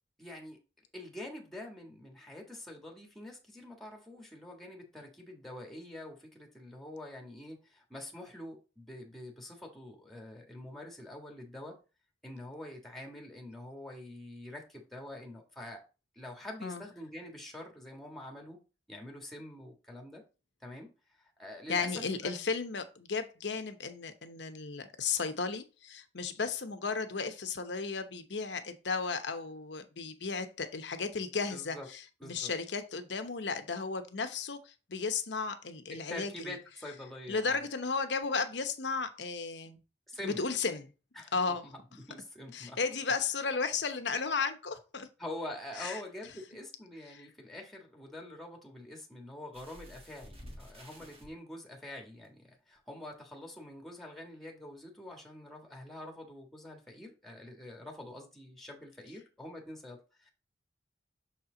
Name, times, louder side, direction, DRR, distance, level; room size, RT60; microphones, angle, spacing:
voice 1, 0.2-0.6 0.9-11.8 12.2-15.8 16.1-18.6 18.9-20.2 20.6-20.9 21.2-22.5 31.5-31.9 32.2-32.5 35.9-37.6 40.1-40.4 41.1-42.8 45.2-60.3, left 1 dB, ahead, 1.5 m, -46 dB
voice 2, 21.7-36.3 37.3-39.8 40.2-40.9 41.3-41.6 42.5-45.1 45.8-46.0 47.1-47.3, left 4 dB, 75° left, 0.9 m, -34 dB
sound 1, 49.5-51.3 52.2-52.3 52.8-52.9, equal, 35° right, 1.6 m, -50 dB
6.6 x 4.4 x 3.8 m
head